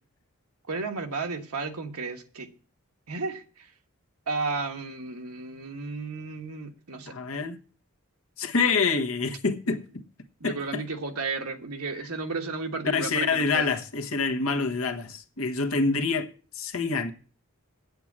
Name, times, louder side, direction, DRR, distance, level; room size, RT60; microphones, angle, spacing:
voice 1, 0.7-2.5 3.1-3.7 4.3-7.1 10.4-13.7, right 3 dB, 85° right, 1.4 m, -33 dB
voice 2, 7.1-7.6 8.4-10.0 10.4-10.8 12.8-16.3 16.5-17.1, left 4 dB, 70° left, 1.2 m, -26 dB
8.5 x 8.0 x 7.3 m
head